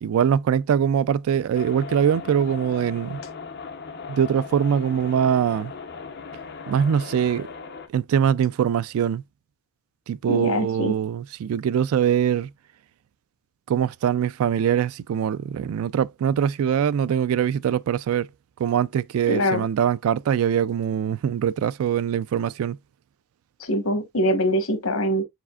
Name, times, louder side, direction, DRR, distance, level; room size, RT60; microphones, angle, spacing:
voice 1, 0.0-3.2 4.1-5.7 6.7-7.5 7.9-9.2 10.1-12.5 13.7-18.3 18.6-22.8, right 8 dB, 80° right, 0.3 m, -23 dB
sound 1, 1.5-7.9, left 5 dB, 50° left, 0.7 m, -38 dB
voice 2, 10.3-10.9 19.3-19.6 23.6-25.2, equal, 80° left, 1.1 m, -23 dB
4.8 x 4.2 x 2.3 m
head